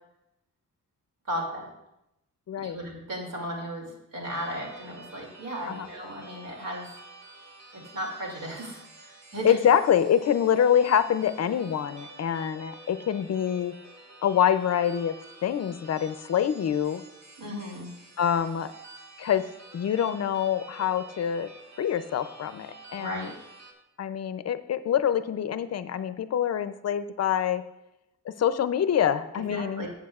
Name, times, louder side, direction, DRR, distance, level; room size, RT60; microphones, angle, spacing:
voice 1, 1.3-1.7 2.6-6.9 7.7-9.6 17.4-17.9 23.0-23.3 29.3-29.9, equal, 90° right, -1 dB, 2.5 m, -35 dB
sound 1, 4.2-23.7, right 2 dB, 60° right, 1.6 m, -49 dB
voice 2, 9.4-13.7 14.2-15.2 15.4-17.0 18.2-18.7 19.2-19.5 19.7-21.5 21.8-23.3 24.0-27.6 28.3-29.9, left 9 dB, 55° left, 12 dB, 0.5 m, -25 dB
14.0 x 8.1 x 2.4 m, 0.86 s
wide cardioid pair, 180°, 32 cm